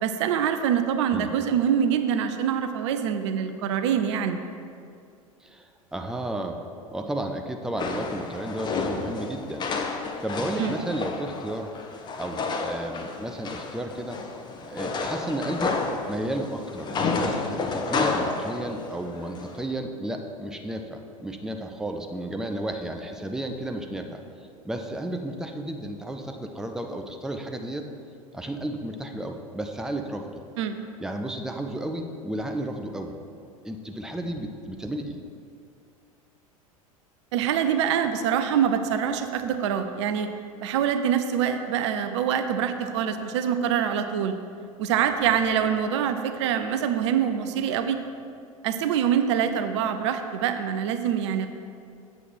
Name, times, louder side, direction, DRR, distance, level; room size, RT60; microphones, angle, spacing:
voice 1, 0.0-4.4 10.6-10.7 30.6-30.8 37.3-40.3 40.6-44.4 44.8-48.0 48.6-51.5, right 8 dB, 55° right, 8 dB, 0.6 m, -25 dB
voice 2, 5.4-6.6 6.9-11.7 12.2-14.2 14.7-15.7 16.1-24.2 24.6-27.9 28.3-30.4 31.0-33.1 33.6-35.2, right 1 dB, 5° right, 4 dB, 0.6 m, -33 dB
sound 1, 7.8-19.6, left 4 dB, 25° left, 0.8 m, -31 dB
8.0 x 7.7 x 4.5 m, 2.4 s
figure-of-eight pair, 80°, 18 cm